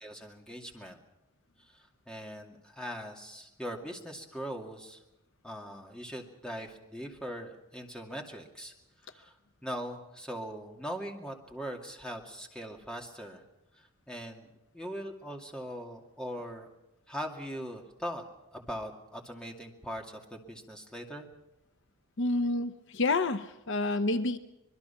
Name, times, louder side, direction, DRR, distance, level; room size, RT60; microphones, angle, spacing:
voice 1, 0.0-1.0 1.7-5.0 5.4-8.7 9.1-9.3 9.6-13.4 13.8-14.5 14.7-16.7 17.1-18.2 18.5-21.2, equal, 5° left, 1 dB, 2.3 m, -41 dB
voice 2, 22.2-24.4, left 2 dB, 60° left, 11 dB, 0.8 m, -29 dB
25.5 x 21.5 x 5.8 m, 0.93 s
head